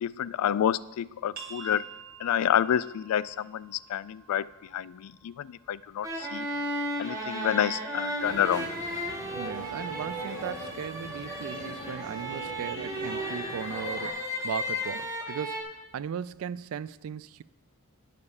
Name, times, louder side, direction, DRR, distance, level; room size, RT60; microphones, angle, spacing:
voice 1, 0.0-1.9 2.2-6.5 7.0-8.7, left 10 dB, 75° left, 0.3 m, -29 dB
sound 1, 1.3-6.7, right 7 dB, 40° right, 1.4 m, -50 dB
sound 2, 6.0-15.6, equal, 15° right, 1.3 m, -35 dB
sound 3, 8.2-14.1, right 1 dB, 20° left, 3.2 m, -41 dB
voice 2, 9.3-17.4, right 8 dB, 65° right, 0.3 m, -37 dB
9.7 x 6.7 x 5.4 m
head